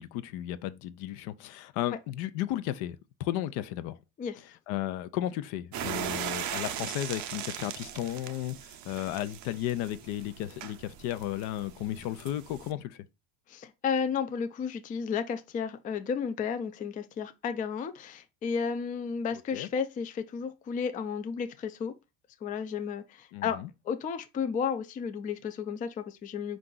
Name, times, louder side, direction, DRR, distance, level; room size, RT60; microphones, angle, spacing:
voice 1, 0.0-4.0 4.7-13.1 19.3-19.7 23.3-23.7, left 13 dB, 70° left, 0.6 m, -34 dB
sound 1, 5.7-12.7, right 10 dB, 45° right, 0.6 m, -39 dB
voice 2, 13.5-21.9 22.4-23.6 23.8-26.6, left 6 dB, 20° left, 0.3 m, -33 dB
4.5 x 2.5 x 3.8 m
supercardioid pair, 105°, 41 cm